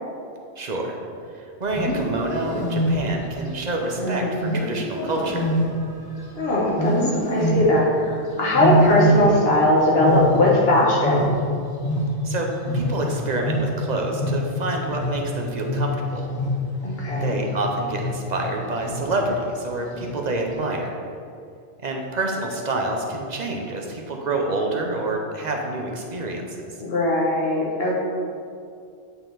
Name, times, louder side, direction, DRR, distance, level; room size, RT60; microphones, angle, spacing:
voice 1, 0.6-1.0 1.3-5.4 12.2-12.5 12.7-16.3 17.2-20.9 21.8-26.4, right 2 dB, 45° right, 1 dB, 0.9 m, -27 dB
Wild animals, 1.6-3.3 4.4-6.3 6.7-7.9 8.5-9.6 9.9-12.4 12.6-17.5 17.9-18.4 18.8-19.2 19.9-20.4, equal, 25° left, 0.7 m, -24 dB
voice 2, 6.3-7.0 7.3-11.3 16.8-17.4 26.8-27.9, left 1 dB, 60° left, -4 dB, 1.6 m, -20 dB
8.9 x 4.3 x 3.9 m, 2.4 s
omnidirectional pair, 1.2 m